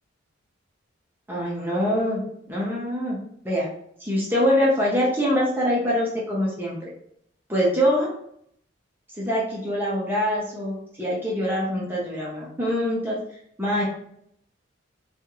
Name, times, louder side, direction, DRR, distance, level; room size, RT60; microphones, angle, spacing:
voice 1, 1.3-2.2 2.5-3.2 3.4-3.7 4.0-6.9 7.5-8.1 9.2-13.2 13.6-13.8, equal, 10° right, -5 dB, 0.6 m, -24 dB
2.8 x 2.4 x 2.9 m, 0.70 s
head